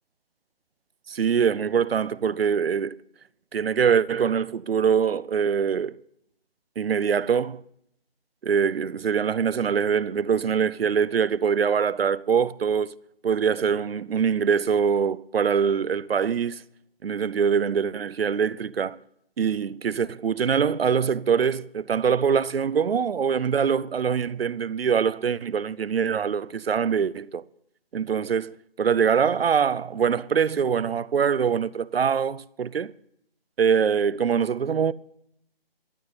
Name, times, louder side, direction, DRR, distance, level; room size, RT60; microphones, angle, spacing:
voice 1, 1.1-3.0 3.5-6.0 6.8-7.6 8.4-12.9 13.2-16.6 17.0-19.0 19.4-27.4 27.9-32.9 33.6-34.9, right 7 dB, 75° right, 0.6 m, -23 dB
13.5 x 8.7 x 7.9 m
figure-of-eight pair, 155°, 30 cm